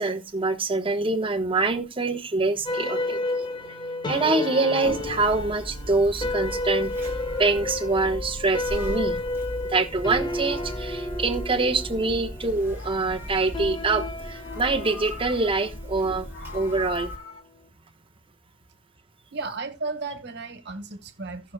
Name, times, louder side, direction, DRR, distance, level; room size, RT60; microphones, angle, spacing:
voice 1, 0.0-3.2 4.1-6.9 7.4-9.2 9.6-16.3 16.5-17.1, right 3 dB, 25° right, 1.1 m, -25 dB
sound 1, 2.7-17.2, left 2 dB, 25° left, 1.3 m, -32 dB
Conversation, 4.8-17.2, equal, 10° right, 2.4 m, -38 dB
Meow, 7.1-9.6 9.8-11.5 12.3-14.0 14.3-15.7 16.1-17.4, left 4 dB, 80° left, 2.1 m, -44 dB
voice 2, 19.3-21.5, right 3 dB, 60° right, 1.5 m, -34 dB
18.0 x 6.2 x 2.2 m
head